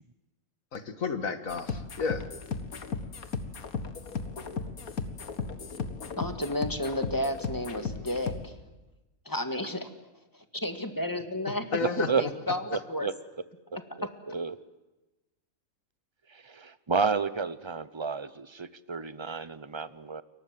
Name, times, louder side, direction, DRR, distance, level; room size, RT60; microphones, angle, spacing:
voice 1, 0.7-2.3 11.7-12.3, left 5 dB, 70° left, 10 dB, 2.1 m, -32 dB
sound 1, 1.5-8.5, left 4 dB, 90° left, 2.1 m, -36 dB
voice 2, 6.2-8.5 9.3-9.9 10.5-11.6 12.0-12.6 12.9-13.1, left 1 dB, 15° left, 8 dB, 2.0 m, -32 dB
voice 3, 11.8-12.2 12.7-13.1 14.0-14.6 16.3-20.2, right 5 dB, 25° right, 15 dB, 0.8 m, -31 dB
29.5 x 23.0 x 7.7 m, 1.1 s
omnidirectional pair, 1.5 m